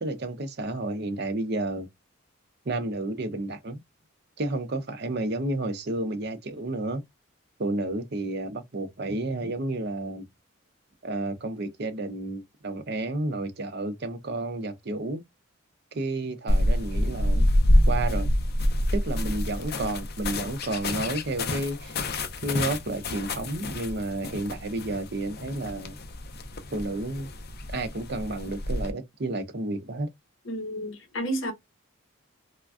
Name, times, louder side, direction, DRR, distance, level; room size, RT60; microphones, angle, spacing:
voice 1, 0.0-1.9 2.7-3.8 4.4-7.0 7.6-10.2 11.0-15.2 15.9-17.5 17.9-18.3 18.9-21.9 22.4-26.0 26.7-27.3 27.7-30.1, right 2 dB, 50° right, 0.5 m, -31 dB
sound 1, 16.5-28.9, left 1 dB, 45° left, 0.5 m, -27 dB
voice 2, 30.5-31.5, right 1 dB, 65° left, 0.8 m, -31 dB
3.3 x 2.2 x 2.3 m
head